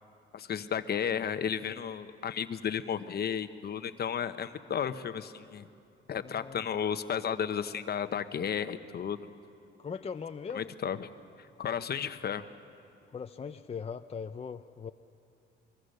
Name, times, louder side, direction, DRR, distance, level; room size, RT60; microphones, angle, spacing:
voice 1, 0.3-5.7 6.1-9.2 10.5-11.1 11.6-12.5, left 8 dB, 55° left, 10 dB, 1.0 m, -33 dB
voice 2, 6.1-6.6 9.8-10.7 13.1-14.9, left 6 dB, 30° left, 7 dB, 0.6 m, -40 dB
25.0 x 23.5 x 6.6 m, 2.6 s
cardioid pair, 90°, 20 cm